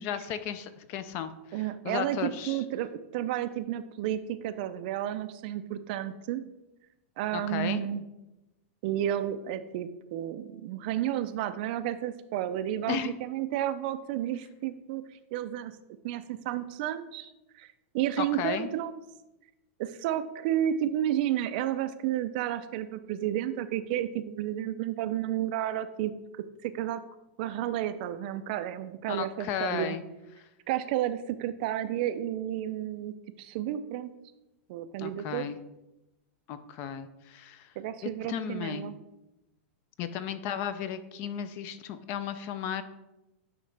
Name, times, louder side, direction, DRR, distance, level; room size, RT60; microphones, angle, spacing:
voice 1, 0.0-2.6 7.3-7.8 12.9-13.1 18.2-18.7 29.1-30.0 35.0-35.6 36.5-37.7 38.0-38.9 40.0-42.8, left 8 dB, 30° left, 12 dB, 0.4 m, -34 dB
voice 2, 1.5-6.4 7.2-8.0 8.8-15.0 15.3-15.7 16.0-17.3 17.6-17.7 17.9-19.0 19.8-26.1 26.6-27.0 27.4-30.0 30.7-34.1 34.7-35.4 37.8-38.9, right 12 dB, 40° right, 12 dB, 0.4 m, -31 dB
9.6 x 3.9 x 3.3 m, 0.96 s
supercardioid pair, 165°, 7 cm